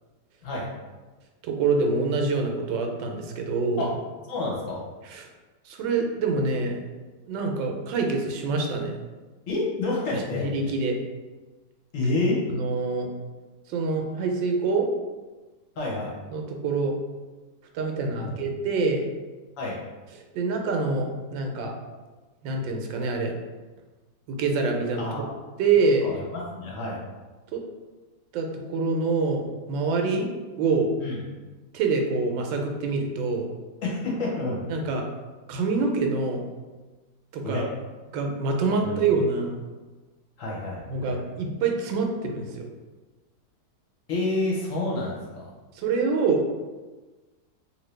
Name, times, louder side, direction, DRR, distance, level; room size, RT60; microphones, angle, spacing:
voice 1, 1.5-3.9 5.0-5.3 5.6-6.8 7.3-8.9 10.1-10.9 12.5-13.1 13.7-14.9 16.3-16.9 17.7-19.0 20.1-21.7 22.4-23.3 24.3-25.2 25.6-26.1 27.5-27.6 28.3-30.3 30.6-30.9 31.7-33.5 34.7-35.0 35.5-36.4 37.3-37.7 38.1-39.6 40.9-42.7 45.7-46.5, right 4 dB, 80° right, 3 dB, 1.3 m, -26 dB
voice 2, 4.3-4.8 9.5-10.5 11.9-12.4 15.8-16.1 18.2-18.3 19.6-19.7 25.0-25.3 26.0-27.0 31.0-31.2 33.8-34.6 37.4-37.6 38.8-38.9 40.4-41.2 44.1-45.5, left 2 dB, 55° left, -5 dB, 1.0 m, -28 dB
2.8 x 2.7 x 3.2 m, 1.3 s
omnidirectional pair, 2.0 m